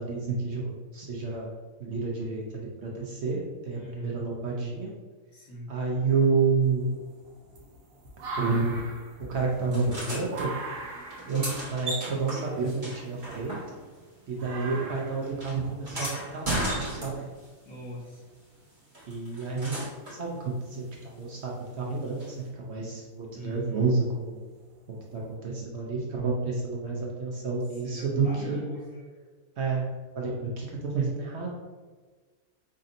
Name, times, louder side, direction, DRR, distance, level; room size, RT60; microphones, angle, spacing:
voice 1, 0.0-1.5 1.8-4.9 5.7-6.9 8.4-10.5 11.3-13.6 14.3-17.3 19.1-19.8 20.1-24.5 24.9-28.6 29.6-31.5, right 4 dB, 60° right, -3 dB, 0.8 m, -30 dB
voice 2, 3.7-4.1 5.3-5.7 17.6-18.2 23.3-23.8 27.8-29.1, equal, 70° left, -6 dB, 1.6 m, -41 dB
sound 1, 6.6-14.0 14.4-15.3 16.6-16.7 18.0-18.1 20.8-21.0 21.5-21.8 22.4-23.0 23.6-23.7 24.7-24.8 25.2-25.3, right 2 dB, 75° right, 1.1 m, -41 dB
sound 2, 9.7-10.5 11.1-14.0 14.3-17.5 18.9-20.2 22.2-22.3, right 1 dB, 25° right, 1.2 m, -35 dB
5.0 x 2.7 x 2.5 m, 1.4 s
omnidirectional pair, 1.5 m